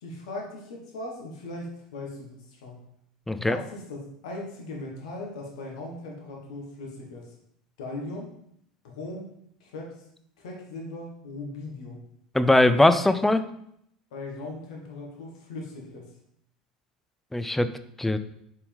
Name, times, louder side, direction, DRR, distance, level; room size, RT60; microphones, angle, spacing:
voice 1, 0.0-2.9 3.3-7.3 7.8-8.3 8.8-9.3 9.6-10.1 10.4-12.0 14.1-16.1, left 2 dB, 65° left, 0 dB, 1.6 m, -39 dB
voice 2, 3.3-3.6 12.3-13.4 17.3-17.7 18.0-18.2, left 1 dB, 5° left, 11 dB, 0.5 m, -20 dB
6.7 x 5.5 x 3.5 m, 0.72 s
figure-of-eight pair, 75°, 4 cm